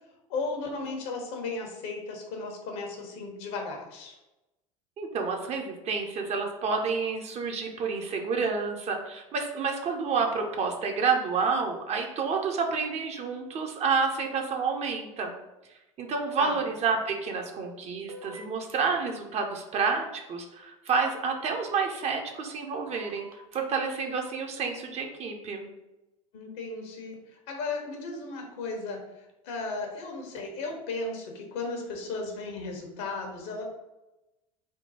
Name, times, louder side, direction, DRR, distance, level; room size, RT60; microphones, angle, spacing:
voice 1, 0.3-4.2 16.4-16.6 26.3-29.0 29.4-33.6, left 3 dB, 60° left, 2 dB, 1.0 m, -35 dB
voice 2, 5.0-15.3 16.0-23.3 23.5-25.7, right 5 dB, 40° right, 3 dB, 0.7 m, -29 dB
sound 1, 18.1-18.7 20.9-21.0 23.0-23.6, right 1 dB, 90° right, 0.6 m, -46 dB
3.6 x 2.2 x 4.2 m, 0.99 s
hypercardioid pair, 75°, 18 cm